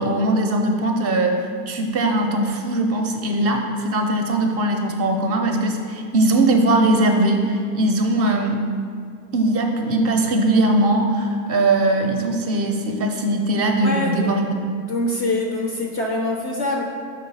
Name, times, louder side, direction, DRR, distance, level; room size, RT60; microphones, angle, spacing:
voice 1, 0.0-8.6 9.3-14.7, right 2 dB, 30° right, 3 dB, 0.5 m, -20 dB
voice 2, 13.8-14.4 14.9-16.8, left 2 dB, 30° left, 1 dB, 0.3 m, -24 dB
5.4 x 3.2 x 5.4 m, 2.2 s
supercardioid pair, 125°, 48 cm